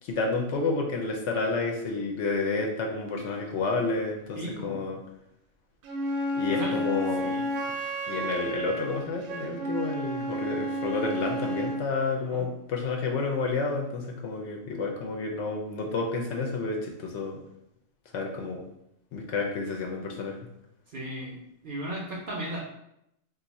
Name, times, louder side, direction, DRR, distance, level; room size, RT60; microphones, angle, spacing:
voice 1, 0.0-5.0 6.3-7.3 8.1-17.4 18.1-18.6 19.1-20.4, left 3 dB, 65° left, 1 dB, 0.8 m, -30 dB
voice 2, 4.3-4.8 6.5-6.8 7.2-7.4 12.3-12.4 20.9-21.4 21.6-22.6, right 1 dB, 55° right, -3 dB, 0.6 m, -35 dB
Wind instrument woodwind instrument, 5.8-11.9, equal, 85° right, 1.0 m, -31 dB
2.6 x 2.4 x 4.0 m, 0.80 s
omnidirectional pair, 1.4 m